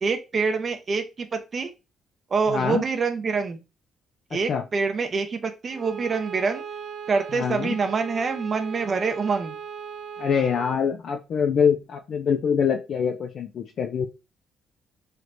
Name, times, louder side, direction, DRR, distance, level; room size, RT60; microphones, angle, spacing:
voice 1, 0.0-1.7 2.3-3.6 4.3-6.6 7.1-9.5, right 4 dB, 45° right, 7 dB, 0.5 m, -26 dB
voice 2, 2.5-2.8 4.3-4.6 7.3-7.8 10.2-14.1, left 7 dB, 60° left, 4 dB, 0.4 m, -24 dB
Bowed string instrument, 5.7-10.9, right 7 dB, 60° right, 1.0 m, -38 dB
3.3 x 3.0 x 2.5 m, 0.27 s
cardioid pair, 90°, 0 cm